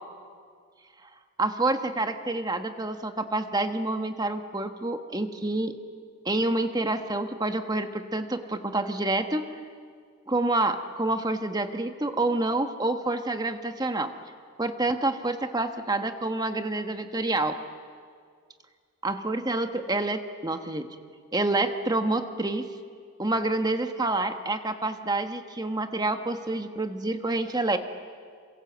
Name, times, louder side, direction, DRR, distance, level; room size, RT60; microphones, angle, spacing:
voice 1, 1.4-5.7 6.2-9.4 10.3-14.1 14.6-17.6 19.0-20.9 21.3-22.7 23.2-27.8, right 2 dB, 15° right, 7 dB, 1.2 m, -28 dB
27.5 x 26.5 x 8.0 m, 2.1 s
head